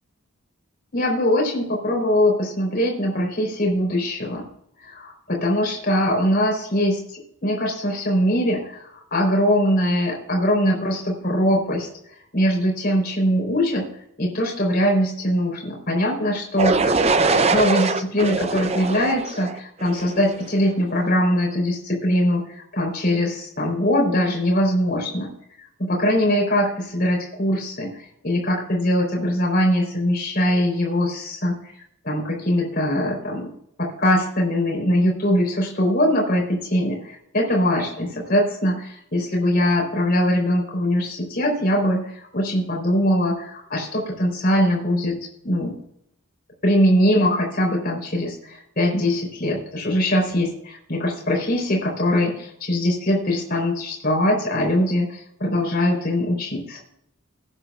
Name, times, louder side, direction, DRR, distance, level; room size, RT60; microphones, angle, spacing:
voice 1, 0.9-4.5 4.8-11.9 12.3-13.9 14.2-25.3 25.8-31.6 32.0-33.5 33.8-45.2 45.4-45.8 46.6-56.8, equal, 40° left, -1 dB, 3.9 m, -22 dB
sound 1, 16.6-20.5, right 3 dB, 30° right, 0.5 m, -22 dB
19.5 x 9.8 x 2.4 m, 0.72 s
head